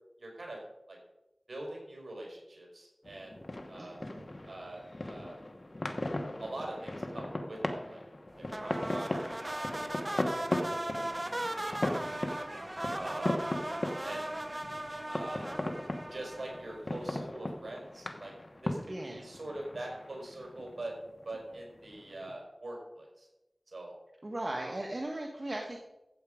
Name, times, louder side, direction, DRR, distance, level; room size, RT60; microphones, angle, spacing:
voice 1, 0.2-0.6 0.9-1.0 1.5-3.3 3.7-4.0 4.5-5.4 6.4-8.0 8.6-9.7 10.2-12.2 12.9-13.4 14.0-14.3 15.0-15.4 16.1-18.3 18.6-21.0 21.2-23.3 23.7-23.9 24.5-24.8, right 1 dB, 75° right, 0 dB, 4.7 m, -43 dB
sound 1, 3.0-22.3, left 1 dB, 50° left, 1.3 m, -38 dB
voice 2, 3.8-4.2 18.8-19.3 24.2-25.8, right 1 dB, 50° right, 1 dB, 1.5 m, -38 dB
sound 2, 8.5-17.0, right 1 dB, 25° right, 0.9 m, -38 dB
13.5 x 8.2 x 5.1 m, 0.95 s
wide cardioid pair, 50°, 0 cm